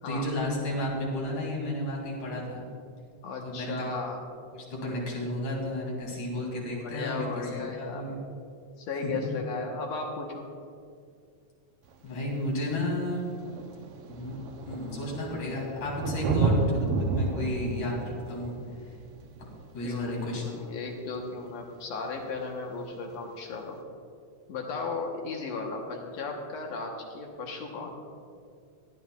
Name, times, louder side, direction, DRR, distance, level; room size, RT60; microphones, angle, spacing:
voice 1, 0.1-2.6 3.4-3.9 4.7-8.2 9.0-9.3 12.0-13.2 14.1-14.4 14.7-18.5 19.4-19.5 19.7-20.5, left 1 dB, 85° left, -3 dB, 4.1 m, -32 dB
voice 2, 3.2-4.2 6.8-8.0 8.8-10.5 19.8-23.8 24.5-28.0, left 3 dB, 65° left, 1 dB, 2.2 m, -35 dB
Thunder, 11.9-12.0 13.0-13.1 13.3-20.6 22.3-22.4, right 4 dB, 75° right, 1.4 m, -31 dB
18.0 x 12.0 x 2.4 m, 2.3 s
omnidirectional pair, 3.4 m